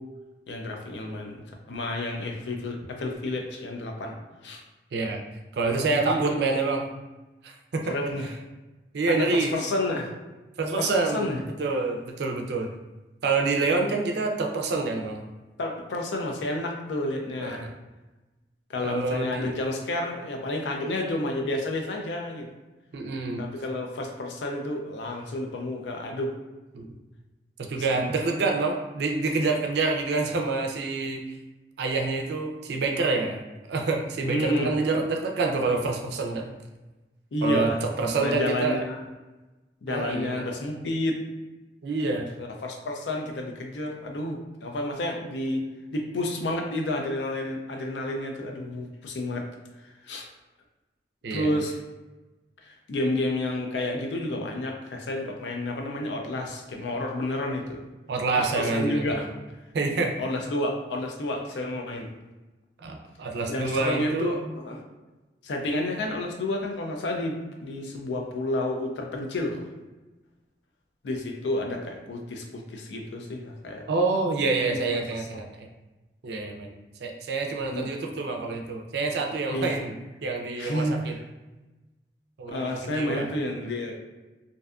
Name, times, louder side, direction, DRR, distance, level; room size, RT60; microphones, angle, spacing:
voice 1, 0.5-4.1 4.4-4.6 5.8-6.4 7.9-8.3 9.1-10.1 10.8-11.4 15.6-17.7 18.7-22.5 23.4-26.3 27.9-28.1 34.3-34.7 37.3-37.8 38.2-39.0 39.8-41.2 42.4-45.6 45.9-49.5 50.1-50.3 51.3-51.7 52.6-57.8 58.4-59.3 60.2-62.1 63.5-64.8 65.4-69.6 71.0-73.8 74.7-74.8 77.7-77.9 79.5-79.8 80.6-81.0 82.5-84.0, left 1 dB, 80° left, 2 dB, 0.4 m, -30 dB
voice 2, 5.5-6.8 7.4-7.9 8.9-9.5 10.6-11.3 11.6-12.7 13.2-15.2 17.4-17.7 18.8-19.5 22.9-23.4 26.7-26.9 27.6-31.4 31.8-33.4 33.7-36.5 37.4-38.8 39.9-40.5 41.8-42.4 51.2-51.5 58.1-59.3 59.7-60.1 62.8-64.5 73.9-75.7 76.2-76.7 77.0-79.9 80.2-81.2 82.4-83.3, right 3 dB, 65° right, 3 dB, 0.4 m, -27 dB
2.6 x 2.2 x 2.4 m, 1.1 s
head